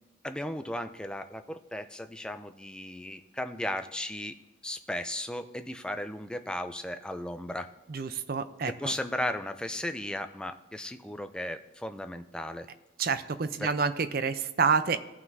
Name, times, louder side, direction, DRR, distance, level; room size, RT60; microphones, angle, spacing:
voice 1, 0.2-4.4 4.6-7.7 8.7-12.7 13.6-13.7, left 1 dB, 5° left, 8 dB, 0.4 m, -35 dB
voice 2, 7.9-8.9 13.0-15.0, right 5 dB, 50° right, 12 dB, 0.5 m, -28 dB
17.0 x 5.7 x 2.7 m, 1.1 s
head